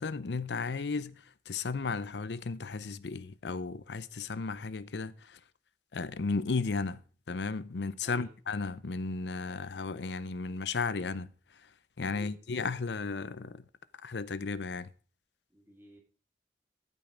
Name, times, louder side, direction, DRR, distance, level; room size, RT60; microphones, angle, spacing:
voice 1, 0.0-5.4 5.9-7.0 7.3-11.3 12.0-13.6 14.0-14.9, left 4 dB, 80° left, 0.6 m, -34 dB
voice 2, 15.5-16.0, right 1 dB, 10° right, 2.7 m, -50 dB
13.5 x 5.5 x 5.0 m
head